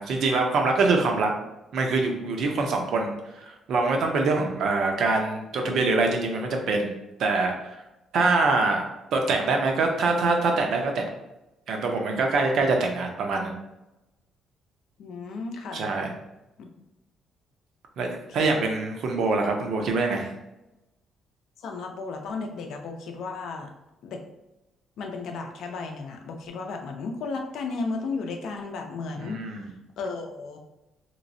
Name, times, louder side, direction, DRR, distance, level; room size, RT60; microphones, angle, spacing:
voice 1, 0.0-1.3 1.7-6.9 7.2-7.5 8.1-8.8 9.1-11.0 11.7-13.6 15.7-16.1 18.0-20.3 29.2-29.7, right 3 dB, 60° right, 3 dB, 0.6 m, -24 dB
voice 2, 15.0-15.9 16.6-16.7 18.3-18.7 21.6-23.7 24.0-24.2 25.0-29.4 30.0-30.6, left 4 dB, 70° left, 3 dB, 0.5 m, -34 dB
3.1 x 3.0 x 2.6 m, 0.96 s
cardioid pair, 135°, 0 cm